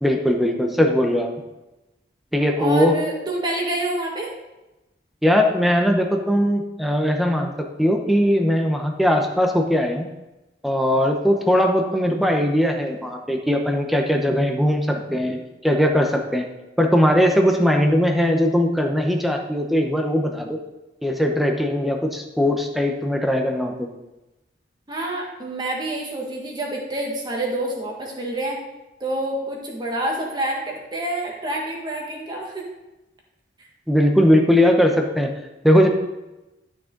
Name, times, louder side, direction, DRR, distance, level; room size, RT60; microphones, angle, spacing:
voice 1, 0.0-1.3 2.3-3.0 5.2-10.1 10.6-16.4 16.8-20.6 21.0-23.9 33.9-35.3 35.6-35.9, equal, ahead, 3 dB, 0.9 m, -19 dB
voice 2, 2.6-4.3 24.9-28.6 29.0-32.6, right 1 dB, 25° right, -1 dB, 1.8 m, -27 dB
12.5 x 6.2 x 3.9 m, 1.0 s
head